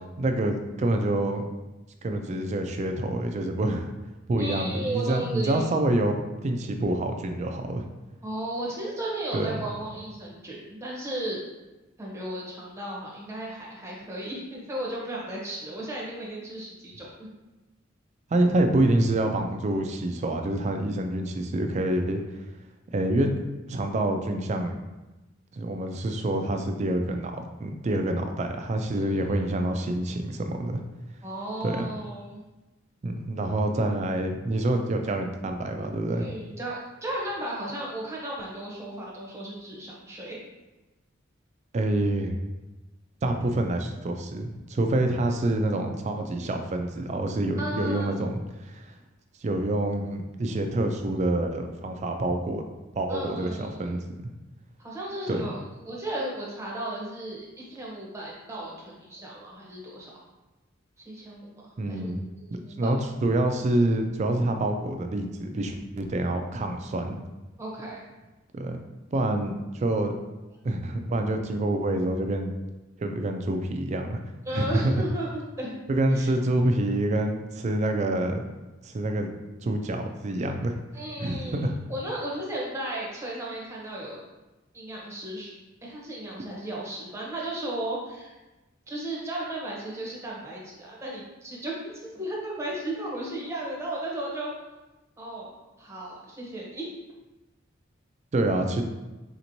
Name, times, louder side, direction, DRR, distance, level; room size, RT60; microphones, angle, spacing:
voice 1, 0.2-1.4 2.0-3.9 4.3-6.2 6.4-7.9 9.3-9.6 18.3-22.2 22.9-23.3 23.7-24.8 25.5-27.3 27.6-30.8 31.6-31.9 33.0-36.3 41.7-42.4 43.2-48.9 49.4-52.6 52.9-54.0 55.3-55.4 61.8-62.2 62.5-67.2 68.5-68.8 69.1-70.1 70.6-72.5 73.0-74.2 74.5-75.0 75.9-78.4 78.8-79.3 79.6-80.8 81.2-81.8 98.3-98.8, right 1 dB, 35° right, 5 dB, 0.3 m, -27 dB
voice 2, 4.4-5.6 8.2-11.4 12.0-17.3 28.9-29.2 31.2-32.4 36.1-40.5 47.6-48.1 53.1-53.8 54.8-55.6 55.9-60.1 61.0-62.9 67.6-68.0 74.5-75.8 76.1-76.3 80.9-84.2 84.7-85.5 85.8-88.4 88.9-94.5 95.2-96.9, right 1 dB, 15° right, -4 dB, 0.8 m, -35 dB
4.2 x 2.9 x 2.6 m, 1.1 s
head